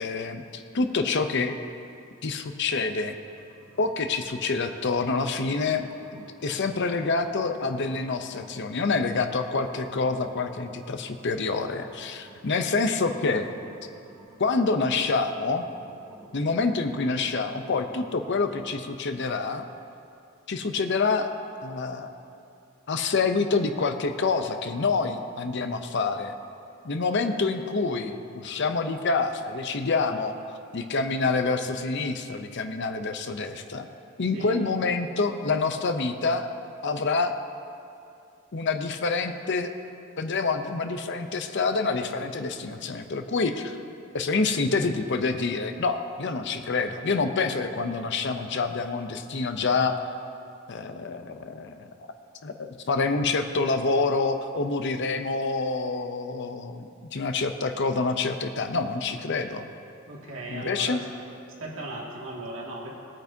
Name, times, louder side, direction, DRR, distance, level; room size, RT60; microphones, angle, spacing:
voice 1, 0.0-1.6 2.2-3.1 3.8-13.5 14.4-15.6 16.3-19.7 20.5-21.3 21.6-22.1 22.9-26.3 26.8-33.9 34.2-36.5 36.8-37.4 38.5-39.7 40.2-43.8 44.1-50.0 50.7-51.9 52.4-59.7 60.5-61.0, left 4 dB, 55° left, 8 dB, 0.6 m, -27 dB
sound 1, 3.3-18.6, right 1 dB, ahead, 2.8 m, -52 dB
voice 2, 60.1-61.0 61.6-63.0, right 1 dB, 70° right, -4 dB, 2.2 m, -37 dB
18.5 x 8.8 x 2.7 m, 2.6 s
head